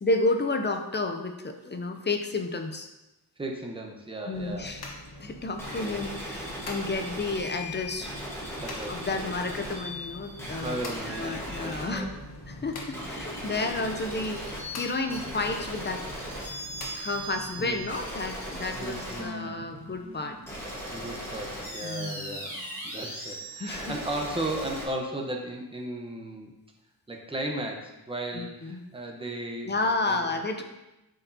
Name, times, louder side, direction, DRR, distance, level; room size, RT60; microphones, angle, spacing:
voice 1, 0.0-2.9 4.3-4.8 5.2-8.1 8.9-10.8 11.0-12.1 12.5-16.0 16.9-20.4 21.8-22.4 23.6-24.0 28.3-28.8 29.6-30.6, left 2 dB, 25° left, 5 dB, 0.5 m, -31 dB
voice 2, 3.4-4.7 5.8-6.0 8.6-9.3 10.6-12.1 17.6-17.9 18.8-19.8 20.9-22.6 22.8-26.5 27.1-30.4, right 1 dB, 15° right, 1 dB, 0.8 m, -36 dB
light switch, 4.3-17.9, left 1 dB, 65° left, 1.2 m, -45 dB
sound 1, 5.6-24.8, equal, 5° left, 1.2 m, -38 dB
sound 2, 11.1-13.7, equal, 55° right, 2.3 m, -50 dB
8.7 x 4.7 x 2.7 m, 0.98 s
wide cardioid pair, 165°, 40 cm